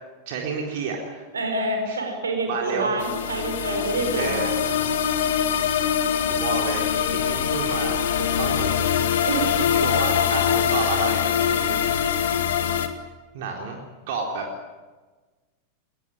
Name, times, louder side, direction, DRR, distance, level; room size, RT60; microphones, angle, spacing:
voice 1, 0.3-1.2 1.9-2.0 2.5-3.0 4.1-4.5 6.2-8.8 9.1-9.2 9.6-11.8 12.0-12.1 13.3-13.8 14.1-14.4, right 4 dB, 50° right, 1 dB, 4.0 m, -30 dB
voice 2, 1.3-4.5 9.2-9.7, right 2 dB, 75° right, 5 dB, 5.0 m, -27 dB
sound 1, 3.0-12.9, left 8 dB, 60° left, 2.1 m, -23 dB
21.0 x 20.0 x 9.9 m, 1.3 s
figure-of-eight pair, 90°, 0 cm